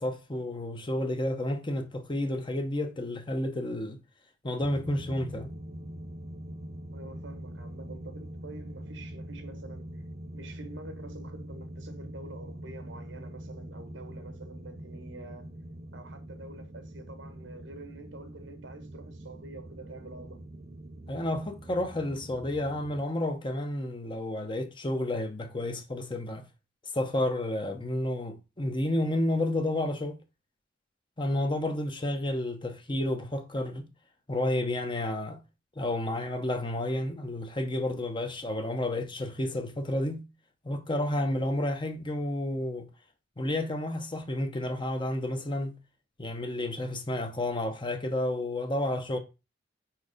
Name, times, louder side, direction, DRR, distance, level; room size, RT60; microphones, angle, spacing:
voice 1, 0.0-4.0 4.4-5.5 21.1-26.5 26.9-30.2 31.2-33.9 34.3-35.4 35.8-40.3 40.6-42.9 43.4-45.8 46.2-49.2, left 1 dB, 25° left, 0.9 m, -31 dB
sound 1, 4.6-23.0, right 1 dB, 35° right, 0.5 m, -43 dB
voice 2, 6.9-10.0 10.3-15.5 15.9-20.4, right 2 dB, 85° right, 1.4 m, -47 dB
4.7 x 4.6 x 5.0 m
head